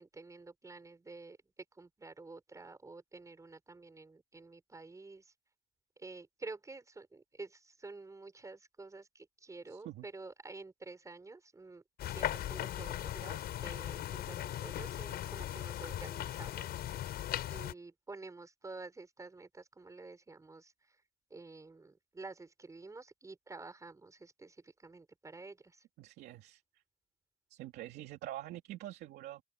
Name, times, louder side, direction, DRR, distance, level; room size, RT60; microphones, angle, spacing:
voice 1, 0.0-1.4 1.7-5.3 6.0-16.7 16.9-17.1 17.5-21.0 21.3-25.8, right 3 dB, 20° right, 6.2 m, -50 dB
voice 2, 9.7-10.1 26.0-26.6 27.5-29.4, right 14 dB, 80° right, 2.8 m, -45 dB
sound 1, 12.0-17.7, left 12 dB, 65° left, 7.1 m, -38 dB
open air
cardioid pair, 110°, 17 cm